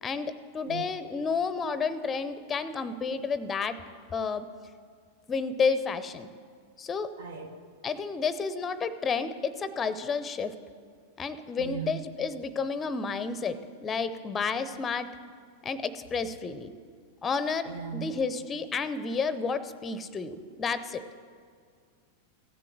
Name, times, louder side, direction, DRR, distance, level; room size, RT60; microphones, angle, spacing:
voice 1, 0.0-3.8 4.1-4.5 5.3-6.3 6.8-7.1 7.8-10.5 11.2-15.1 15.6-16.7 17.2-21.0, left 5 dB, 20° left, 14 dB, 0.7 m, -31 dB
voice 2, 7.2-7.5 11.6-12.0 17.7-18.0, right 7 dB, 65° right, 5 dB, 1.3 m, -37 dB
15.5 x 7.6 x 7.5 m, 2.1 s
figure-of-eight pair, 90°, 0 cm